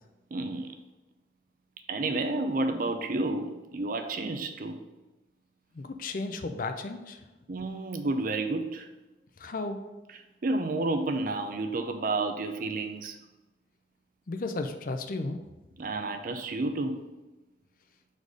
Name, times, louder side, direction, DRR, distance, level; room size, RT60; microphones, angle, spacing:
voice 1, 0.3-0.8 1.9-4.8 7.5-8.9 10.4-13.2 15.8-17.0, right 2 dB, 50° right, 7 dB, 0.5 m, -30 dB
voice 2, 5.7-7.2 9.4-9.8 14.3-15.4, left 3 dB, 50° left, 7 dB, 0.5 m, -34 dB
4.8 x 4.1 x 5.2 m, 1.1 s
head